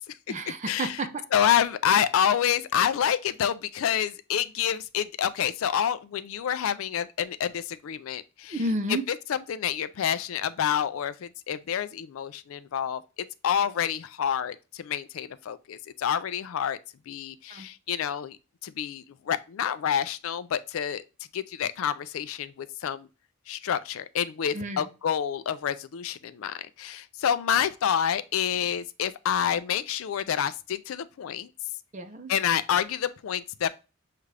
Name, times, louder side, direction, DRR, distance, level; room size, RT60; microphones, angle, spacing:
voice 1, 0.3-1.2 8.5-9.0 17.5-17.7 24.5-24.9 31.9-32.3, right 1 dB, 35° right, 0.5 m, -31 dB
voice 2, 1.3-8.6 9.1-13.0 13.4-16.8 17.1-18.4 18.6-21.0 21.3-23.1 23.5-31.5 32.3-33.7, left 9 dB, 70° left, 0.3 m, -28 dB
6.7 x 2.4 x 3.2 m
head